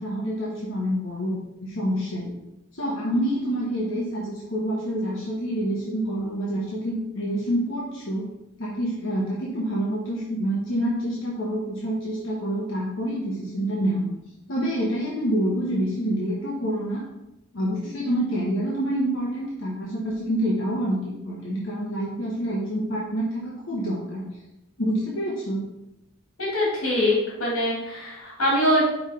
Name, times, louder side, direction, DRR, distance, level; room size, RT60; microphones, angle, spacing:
voice 1, 0.0-2.3 2.7-8.3 8.6-14.1 14.5-17.0 17.5-24.2 24.8-25.6, equal, 65° left, -5 dB, 1.2 m, -27 dB
voice 2, 26.4-28.9, equal, 85° left, -4 dB, 2.1 m, -23 dB
5.7 x 3.6 x 5.6 m, 0.90 s
head